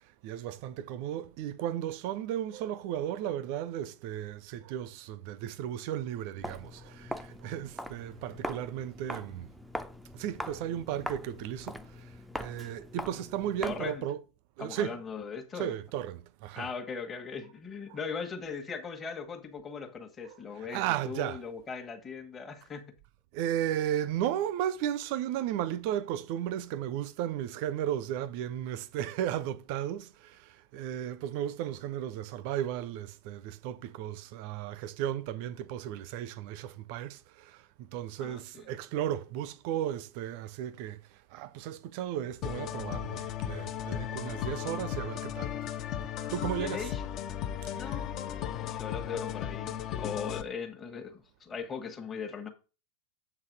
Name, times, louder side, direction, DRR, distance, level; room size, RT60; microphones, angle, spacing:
voice 1, 0.0-9.5 10.1-14.2 14.6-15.0 15.5-16.7 20.2-21.4 23.3-45.5 46.3-46.8 47.6-48.0, right 11 dB, 45° right, 0.6 m, -35 dB
Walk footsteps, 6.4-14.0, equal, ahead, 0.5 m, -41 dB
voice 2, 13.6-14.0 14.6-15.7 16.6-22.9 38.2-38.7 46.6-47.0 47.7-52.5, left 5 dB, 20° left, 1.3 m, -39 dB
sound 1, 42.4-50.4, left 10 dB, 35° left, 0.8 m, -36 dB
7.6 x 4.0 x 6.2 m
figure-of-eight pair, 90°, 0 cm